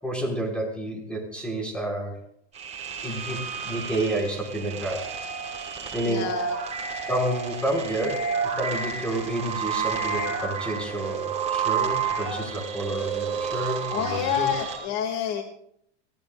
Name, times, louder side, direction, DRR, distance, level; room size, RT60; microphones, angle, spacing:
voice 1, 0.0-2.2 3.0-5.1 5.9-6.2 7.1-14.5, right 1 dB, 5° left, 0 dB, 5.9 m, -30 dB
sound 1, 2.5-14.8, right 6 dB, 20° right, 5.9 m, -31 dB
voice 2, 6.1-6.6 13.9-15.4, left 8 dB, 50° left, 4 dB, 2.6 m, -28 dB
29.0 x 17.0 x 2.6 m, 0.69 s
supercardioid pair, 125°, 35 cm